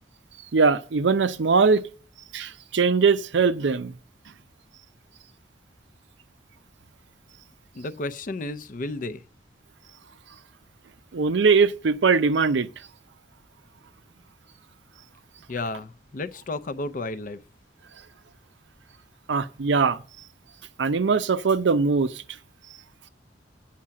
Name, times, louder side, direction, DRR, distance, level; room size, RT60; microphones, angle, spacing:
voice 1, 0.5-1.8 2.3-3.9 11.1-12.7 19.3-20.0 20.8-22.2, right 5 dB, 90° right, 0.6 m, -21 dB
voice 2, 7.7-9.2 15.5-17.4, left 2 dB, 50° left, 0.5 m, -32 dB
8.5 x 5.7 x 7.5 m
head